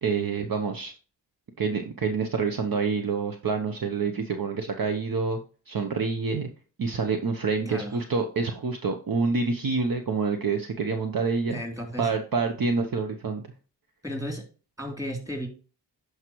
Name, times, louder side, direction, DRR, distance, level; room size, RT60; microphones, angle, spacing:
voice 1, 0.0-0.9 1.6-5.4 5.7-6.5 6.8-11.6 12.0-13.4, right 4 dB, 50° right, 6 dB, 0.9 m, -27 dB
voice 2, 7.7-8.0 11.5-12.1 14.0-14.4 14.8-15.5, equal, 5° right, 2 dB, 3.1 m, -34 dB
11.0 x 4.8 x 3.1 m, 0.37 s
cardioid pair, 60°, 44 cm